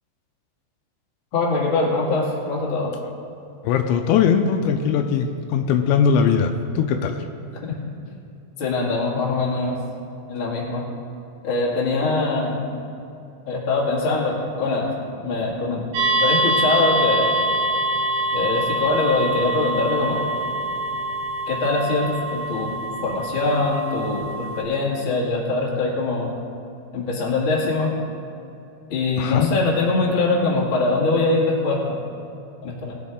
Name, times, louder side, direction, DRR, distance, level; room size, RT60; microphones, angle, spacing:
voice 1, 1.3-2.9 7.6-7.8 8.6-9.8 10.3-10.8 11.4-12.7 13.5-14.9 15.2-15.8 16.2-17.3 18.3-20.2 21.5-22.7 23.0-26.3 26.9-27.9 28.9-31.9 32.6-32.9, left 3 dB, 45° left, -4 dB, 1.7 m, -22 dB
voice 2, 3.6-7.2 29.2-29.5, left 7 dB, 80° left, 6 dB, 2.8 m, -20 dB
sound 1, 15.9-24.6, right 1 dB, 90° right, 4.0 m, -24 dB
20.5 x 7.5 x 3.7 m, 2.7 s
omnidirectional pair, 5.4 m